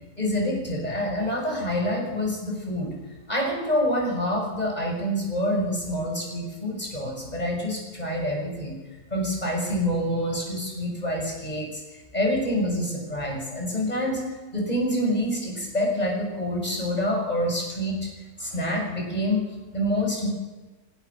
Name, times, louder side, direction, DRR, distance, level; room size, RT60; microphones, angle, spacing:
voice 1, 0.2-2.9 3.3-8.8 9.1-17.9 18.4-19.4 19.7-20.3, equal, 25° left, -1 dB, 7.2 m, -27 dB
25.5 x 18.0 x 6.4 m, 1.2 s
omnidirectional pair, 1.7 m